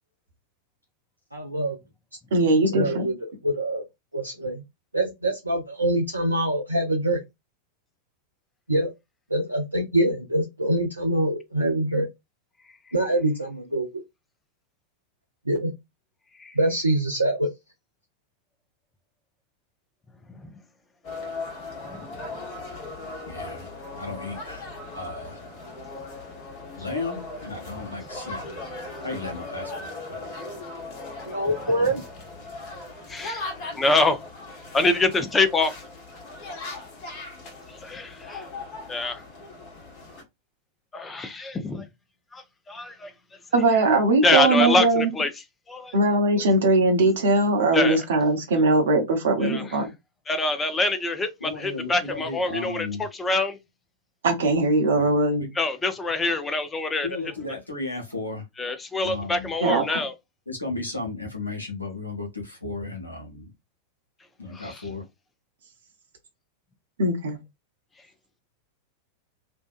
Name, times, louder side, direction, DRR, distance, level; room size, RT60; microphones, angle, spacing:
voice 1, 1.3-1.8 2.7-3.1 3.4-3.8 4.1-4.6 4.9-7.2 8.7-8.9 9.3-12.1 12.9-14.0 15.5-15.7 16.6-17.5 31.3-32.0, right 1 dB, 85° right, 0.4 m, -24 dB
voice 2, 2.3-3.0 43.5-45.1 45.9-49.9 54.2-55.5 59.6-60.0 67.0-67.4, right 2 dB, 60° right, 0.8 m, -20 dB
sound 1, 21.0-40.2, left 2 dB, 40° left, 1.0 m, -38 dB
voice 3, 23.3-24.7 24.9-25.4 26.8-28.6 29.0-30.3 51.4-53.1 55.0-55.5 57.0-58.4 59.0-59.5 60.5-63.5 64.4-65.0, left 3 dB, 85° left, 0.9 m, -34 dB
voice 4, 33.1-33.5 33.8-34.2 34.7-35.7 37.8-38.5 38.9-39.2 40.9-41.8 42.3-43.1 44.2-45.3 45.7-45.9 47.7-48.0 49.4-49.6 50.3-53.6 55.6-57.1 58.6-60.1 64.5-64.8, left 2 dB, 15° left, 0.5 m, -25 dB
2.6 x 2.2 x 2.4 m
figure-of-eight pair, 90°, 0 cm